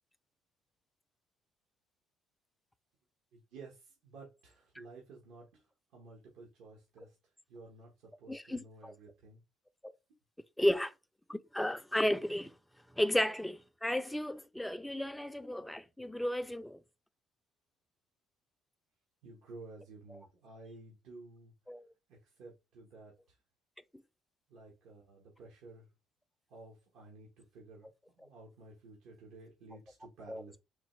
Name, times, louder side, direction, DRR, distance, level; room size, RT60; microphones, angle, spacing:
voice 1, 3.3-5.7 5.9-7.2 7.5-9.4 19.2-21.5 22.1-23.4 24.5-25.9 26.5-27.9 28.1-30.6, right 3 dB, 80° right, 1.2 m, -53 dB
voice 2, 8.3-8.9 9.8-9.9 10.6-10.9 11.3-12.5 13.0-16.8 20.1-20.2 21.7-21.9 30.3-30.4, left 1 dB, 5° left, 0.3 m, -33 dB
3.9 x 2.9 x 3.1 m
cardioid pair, 100°, 0 cm